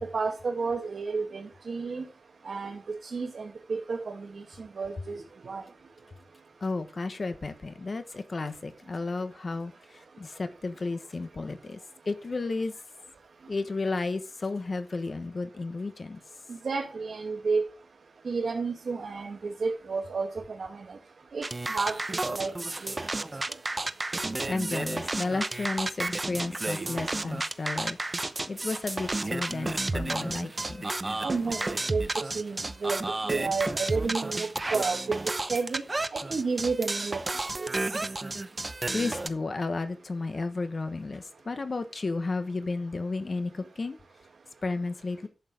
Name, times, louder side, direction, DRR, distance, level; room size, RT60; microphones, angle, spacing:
voice 1, 0.0-2.0 2.5-5.6 16.6-17.6 18.3-21.0 21.3-22.5 22.8-22.9 31.2-35.8 36.3-37.2 37.6-37.7, right 4 dB, 65° right, 2.0 m, -31 dB
voice 2, 6.6-11.8 12.0-12.7 13.5-16.2 24.5-28.0 28.5-30.9 38.9-44.0 44.6-45.3, left 3 dB, 45° left, 1.1 m, -33 dB
sound 1, 21.4-39.3, right 2 dB, 25° right, 0.8 m, -32 dB
11.5 x 8.2 x 5.1 m
wide cardioid pair, 130°, 0 cm